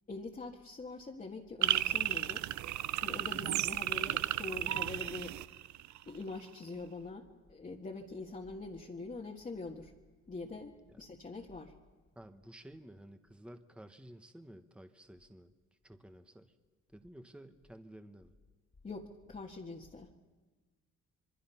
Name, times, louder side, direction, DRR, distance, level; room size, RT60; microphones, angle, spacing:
voice 1, 0.1-2.5 3.0-5.4 6.1-9.9 10.3-11.7 18.8-20.1, left 3 dB, 25° left, -1 dB, 1.7 m, -44 dB
sound 1, 1.6-6.1, right 14 dB, 70° right, 0.6 m, -33 dB
voice 2, 12.1-15.5 15.8-16.5 16.9-18.3, right 1 dB, 5° right, 8 dB, 1.2 m, -53 dB
26.0 x 23.0 x 5.8 m, 1.4 s
cardioid pair, 90°, 30 cm